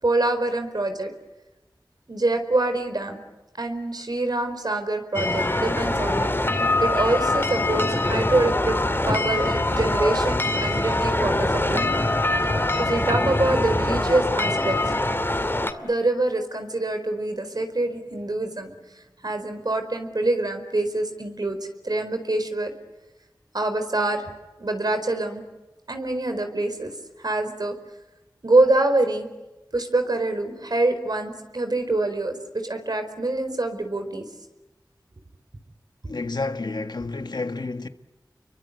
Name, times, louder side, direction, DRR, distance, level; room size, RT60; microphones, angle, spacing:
voice 1, 0.0-1.1 2.1-3.2 3.6-6.3 6.8-8.8 9.0-11.9 12.8-14.8 15.8-21.6 21.8-22.7 23.5-24.3 24.6-25.4 25.9-26.9 27.2-27.8 28.4-29.3 29.7-34.3, right 2 dB, 65° right, 4.7 m, -25 dB
sound 1, 5.1-15.7, left 2 dB, 30° left, 2.5 m, -23 dB
voice 2, 36.0-37.9, left 3 dB, 70° left, 1.6 m, -30 dB
30.0 x 23.5 x 8.3 m
wide cardioid pair, 45°, 8 cm